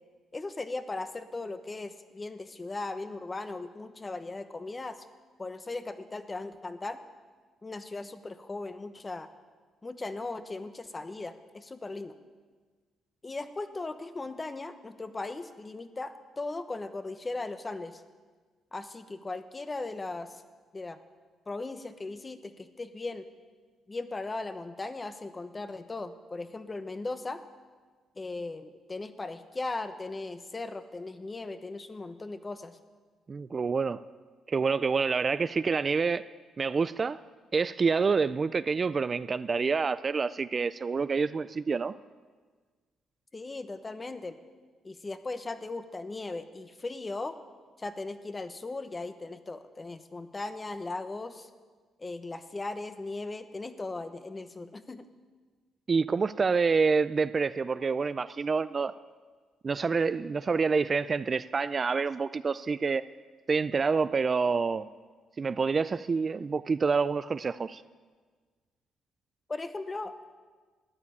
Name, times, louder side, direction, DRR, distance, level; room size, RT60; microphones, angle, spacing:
voice 1, 0.3-5.0 5.4-7.0 7.6-9.3 9.8-12.1 13.2-18.0 18.7-20.4 20.7-21.0 21.5-23.2 23.9-27.4 28.2-32.8 43.3-44.4 44.8-47.4 47.8-51.5 52.0-55.0 69.5-70.3, left 3 dB, 25° left, 10 dB, 1.1 m, -38 dB
voice 2, 33.3-34.0 34.5-36.2 36.6-37.2 37.5-41.9 55.9-58.9 59.6-63.0 63.5-64.9 65.4-67.8, right 5 dB, 35° right, 15 dB, 0.4 m, -27 dB
14.0 x 9.9 x 8.5 m, 1.5 s
cardioid pair, 90°, 0 cm